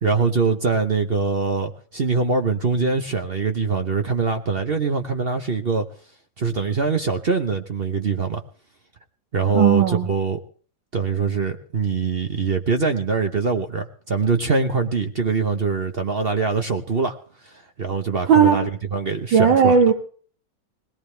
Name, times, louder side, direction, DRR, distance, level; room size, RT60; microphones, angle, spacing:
voice 1, 0.0-5.9 6.4-8.4 9.3-10.4 10.9-17.1 17.5-19.8, right 4 dB, 45° right, 6 dB, 0.8 m, -23 dB
voice 2, 9.5-10.1 18.3-18.6 19.3-19.9, right 7 dB, 80° right, 4 dB, 2.4 m, -16 dB
20.5 x 18.0 x 3.3 m, 0.43 s
omnidirectional pair, 2.1 m